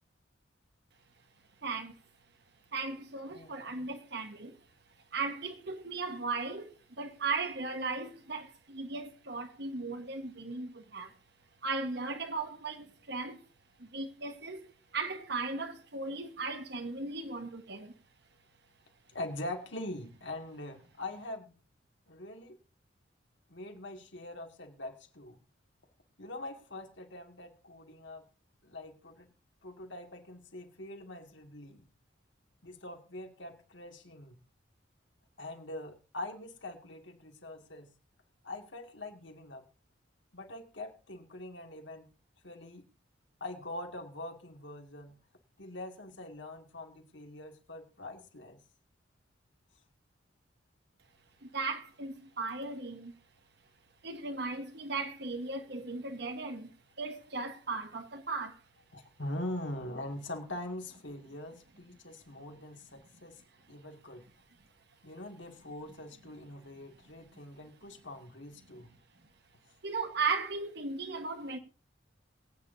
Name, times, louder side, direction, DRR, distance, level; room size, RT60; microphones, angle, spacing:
voice 1, 1.6-2.0 2.7-4.6 5.1-11.1 11.6-13.4 13.8-17.9 51.4-53.1 54.0-58.6 69.8-71.6, right 4 dB, 60° right, 1.4 m, -37 dB
voice 2, 19.1-21.6 22.1-22.6 23.5-25.4 26.2-28.2 28.6-29.3 29.6-31.8 32.6-34.4 35.4-37.9 38.4-39.7 40.3-42.1 42.4-42.9 43.4-45.2 45.6-48.6 58.9-63.4 63.7-64.3 65.0-68.9, left 1 dB, 70° left, 2.2 m, -43 dB
23.0 x 8.9 x 2.7 m
head